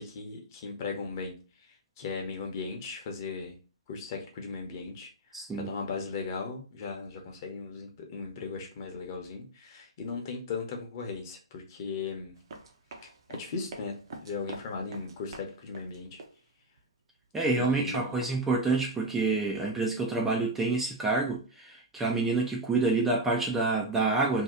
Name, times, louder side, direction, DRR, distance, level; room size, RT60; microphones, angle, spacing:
voice 1, 0.0-3.6 3.9-5.1 5.5-12.3 13.0-13.9 14.2-16.2 17.5-18.2, left 4 dB, 35° left, 0.8 m, -37 dB
voice 2, 5.3-5.7 17.3-24.4, right 3 dB, 5° right, 0.4 m, -28 dB
Run, 12.3-16.8 17.2-19.1, right 3 dB, 50° right, 0.7 m, -47 dB
2.8 x 2.3 x 3.7 m
figure-of-eight pair, 140°, 3 cm